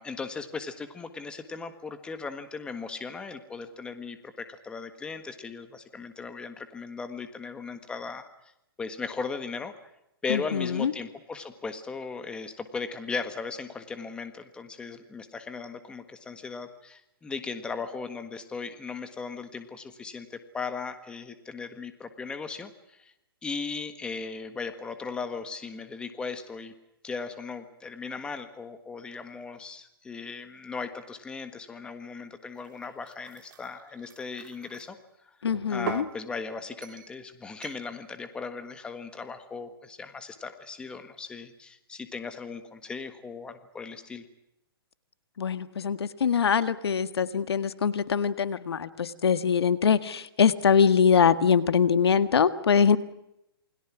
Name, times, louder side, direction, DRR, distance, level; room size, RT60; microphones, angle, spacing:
voice 1, 0.0-8.3 8.8-9.7 10.2-23.1 23.4-26.7 27.0-35.0 35.2-35.4 35.7-44.2, left 4 dB, 5° left, 9 dB, 1.5 m, -37 dB
voice 2, 10.3-10.9 35.4-36.1 45.4-53.0, left 7 dB, 85° left, 13 dB, 1.7 m, -23 dB
sound 1, 32.6-34.9 35.5-36.1 36.8-37.2 37.6-37.9, right 9 dB, 50° right, 2.2 m, -41 dB
28.5 x 22.0 x 6.1 m, 0.84 s
hypercardioid pair, 160°, 13 cm